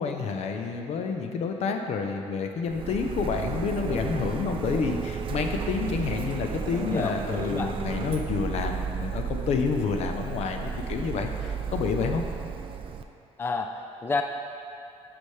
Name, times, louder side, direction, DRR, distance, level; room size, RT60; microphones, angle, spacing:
voice 1, 0.0-12.2, left 5 dB, 65° left, 4 dB, 0.7 m, -29 dB
Printer, 2.7-13.0, right 6 dB, 45° right, 0.4 m, -33 dB
voice 2, 6.7-7.7 13.4-14.2, left 4 dB, 20° left, 4 dB, 0.4 m, -31 dB
12.0 x 6.1 x 3.3 m, 2.6 s
cardioid pair, 130°, 12 cm